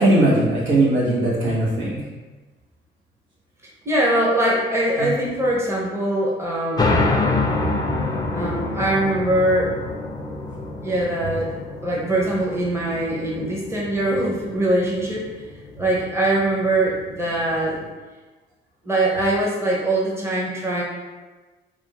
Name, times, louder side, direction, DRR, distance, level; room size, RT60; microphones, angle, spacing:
voice 1, 0.0-2.0 5.0-5.1, right 1 dB, 70° right, -6 dB, 1.4 m, -19 dB
voice 2, 3.8-7.0 8.3-9.8 10.8-15.3 15.8-17.8 18.8-20.8, right 1 dB, 15° right, -4 dB, 0.9 m, -22 dB
sound 1, 6.8-17.9, left 2 dB, 20° left, 0.5 m, -27 dB
3.4 x 2.6 x 4.1 m, 1.3 s
cardioid pair, 90°, 20 cm